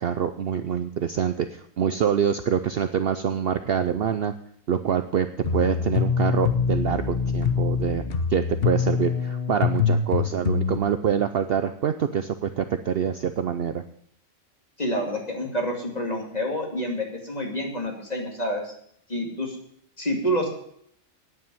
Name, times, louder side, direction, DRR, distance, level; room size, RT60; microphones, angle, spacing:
voice 1, 0.0-4.3 4.7-5.3 5.5-8.0 8.3-13.8, right 8 dB, 55° right, 10 dB, 0.7 m, -25 dB
sound 1, 5.4-10.8, left 6 dB, 50° left, 1.1 m, -24 dB
voice 2, 14.8-18.7 19.1-19.6 20.0-20.5, equal, 30° left, 1 dB, 2.6 m, -28 dB
9.6 x 8.6 x 9.0 m, 0.68 s
omnidirectional pair, 1.4 m